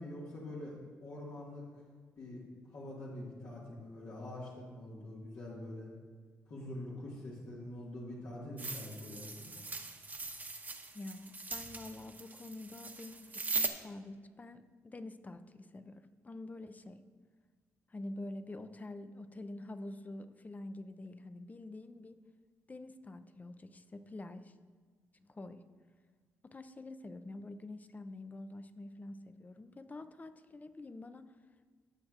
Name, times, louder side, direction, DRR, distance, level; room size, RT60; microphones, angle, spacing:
voice 1, 0.0-1.6 2.2-2.4 2.7-5.9 6.5-9.5, left 1 dB, 70° left, -6 dB, 1.9 m, -45 dB
sound 1, 8.6-13.7, right 3 dB, 30° right, 1.0 m, -40 dB
voice 2, 10.9-17.0 17.9-22.2 22.7-24.5 25.2-25.6 26.4-31.3, left 2 dB, 25° left, 11 dB, 0.6 m, -47 dB
16.0 x 6.4 x 2.5 m, 1.5 s
supercardioid pair, 65°, 6 cm